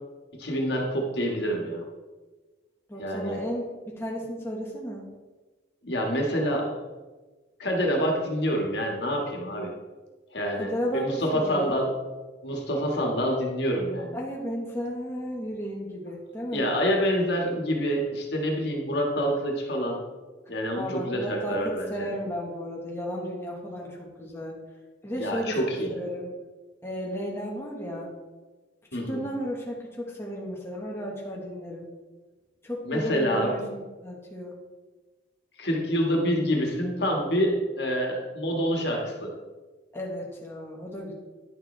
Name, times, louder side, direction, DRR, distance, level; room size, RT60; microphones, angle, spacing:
voice 1, 0.3-1.8 2.9-3.4 5.8-6.8 7.6-9.7 10.3-11.9 12.4-14.2 16.5-20.0 20.5-22.1 25.1-25.9 28.9-29.2 32.8-33.5 35.6-39.3, equal, 60° left, 0 dB, 1.7 m, -27 dB
voice 2, 2.9-5.0 10.6-11.8 14.1-16.6 20.8-24.6 25.0-25.6 25.9-26.3 26.8-28.1 29.1-31.9 32.6-34.5 39.9-41.1, equal, 15° left, -3 dB, 1.3 m, -34 dB
10.5 x 7.0 x 3.3 m, 1.3 s
head